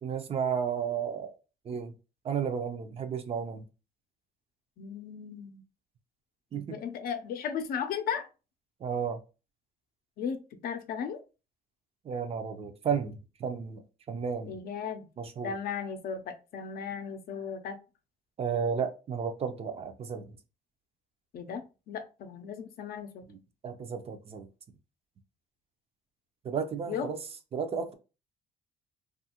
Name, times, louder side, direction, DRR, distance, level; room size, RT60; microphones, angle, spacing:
voice 1, 0.0-1.3 1.7-1.9 2.2-3.6 6.5-6.6 8.8-9.2 12.0-13.8 14.1-14.5 15.2-15.5 18.4-20.4 23.3-23.4 23.6-24.5 26.4-27.2 27.5-27.9, right 6 dB, 35° right, 0.5 m, -33 dB
voice 2, 4.8-5.6 6.5-8.3 10.2-11.2 14.5-15.1 15.4-17.8 21.3-23.2 26.9-27.1, left 7 dB, 60° left, 0.5 m, -36 dB
2.6 x 2.4 x 2.8 m
cardioid pair, 110°, 17 cm